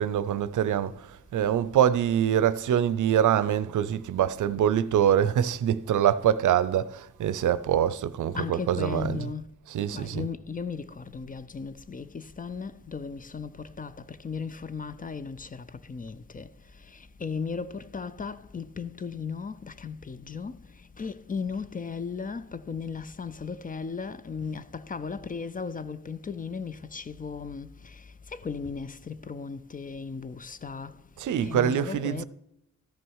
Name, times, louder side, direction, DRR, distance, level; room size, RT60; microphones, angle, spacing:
voice 1, 0.0-9.3 9.7-10.3 31.2-32.2, right 10 dB, 85° right, 0.5 m, -25 dB
voice 2, 8.3-9.4 9.9-16.5 17.2-20.6 21.0-28.0 28.3-30.9 31.4-32.2, left 5 dB, 30° left, 0.4 m, -36 dB
13.5 x 6.1 x 4.7 m
wide cardioid pair, 110°, 30 cm